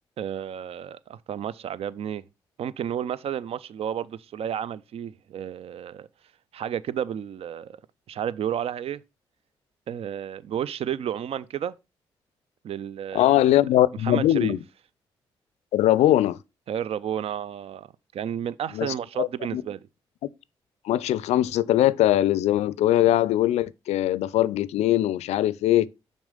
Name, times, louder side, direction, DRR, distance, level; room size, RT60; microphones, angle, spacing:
voice 1, 0.2-2.2 2.6-6.1 6.5-7.8 8.1-9.0 9.9-11.8 12.6-13.4 14.0-14.6 16.7-17.9 18.1-19.8, right 9 dB, 60° right, 0.4 m, -31 dB
voice 2, 13.1-14.6 15.7-16.4 18.7-19.6 20.8-25.9, left 13 dB, 75° left, 0.4 m, -21 dB
6.2 x 4.2 x 5.0 m
hypercardioid pair, 45°, 11 cm